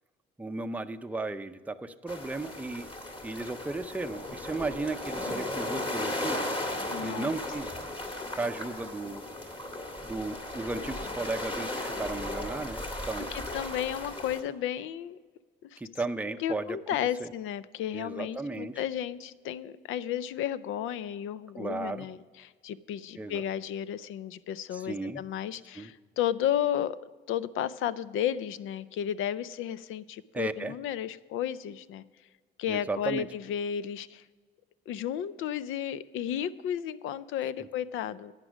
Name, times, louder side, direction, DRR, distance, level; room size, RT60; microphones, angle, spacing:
voice 1, 0.4-2.9 3.2-6.5 7.0-7.8 8.4-9.2 10.0-13.3 15.8-17.3 17.9-18.7 21.5-22.1 23.2-23.4 24.7-25.2 25.8-25.9 30.3-30.7 32.7-33.3 37.6-37.7, right 3 dB, 5° right, 7 dB, 0.5 m, -35 dB
sound 1, 2.1-14.4, left 1 dB, 25° left, 2.1 m, -36 dB
voice 2, 6.9-7.3 13.3-15.2 15.7-15.8 16.4-27.0 27.3-32.0 32.6-34.2 34.9-38.3, left 10 dB, 85° left, 16 dB, 0.5 m, -33 dB
11.5 x 8.9 x 4.9 m, 1.5 s
cardioid pair, 90°, 20 cm